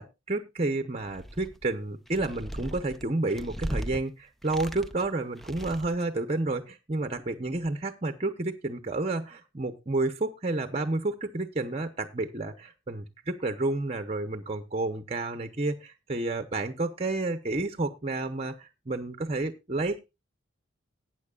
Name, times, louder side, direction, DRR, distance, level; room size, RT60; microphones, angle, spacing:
voice 1, 0.0-20.0, right 2 dB, 30° right, 9 dB, 0.9 m, -30 dB
sound 1, 1.0-1.7 2.1-4.0 4.4-5.1 5.4-6.1, equal, ahead, 0.6 m, -37 dB
19.0 x 9.2 x 2.4 m, 0.25 s
head